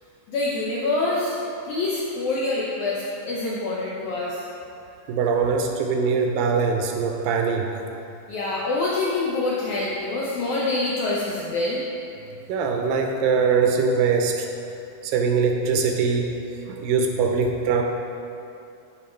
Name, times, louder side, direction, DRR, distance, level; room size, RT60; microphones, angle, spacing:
voice 1, 0.3-1.4 1.7-4.4 8.3-11.8, left 2 dB, 75° left, -5 dB, 1.7 m, -26 dB
voice 2, 5.1-7.7 12.5-14.5 15.0-16.4 16.6-17.8, right 5 dB, 80° right, 3 dB, 2.2 m, -22 dB
11.0 x 4.7 x 4.3 m, 2.6 s
omnidirectional pair, 4.2 m